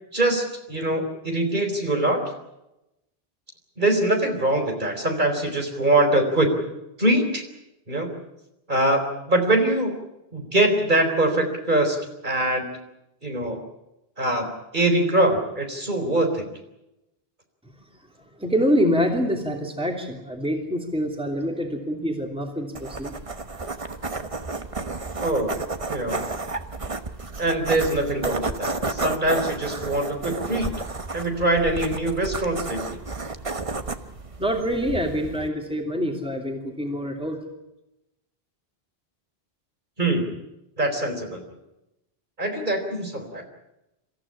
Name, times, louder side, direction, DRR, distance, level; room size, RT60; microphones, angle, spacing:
voice 1, 0.1-2.2 3.8-6.5 7.0-7.4 7.9-8.1 8.7-9.9 10.3-12.0 12.2-12.7 13.2-13.6 14.2-14.5 14.7-16.4 25.2-25.5 25.9-26.2 27.4-30.7 31.1-32.8 40.0-40.3 40.8-41.4 42.4-43.4, right 1 dB, 50° right, 4 dB, 4.3 m, -23 dB
voice 2, 18.2-23.1 34.4-37.4, equal, 5° right, 2 dB, 2.9 m, -26 dB
sound 1, 22.7-35.5, right 3 dB, 35° right, 1.2 m, -32 dB
26.0 x 15.0 x 9.9 m, 0.92 s
omnidirectional pair, 1.0 m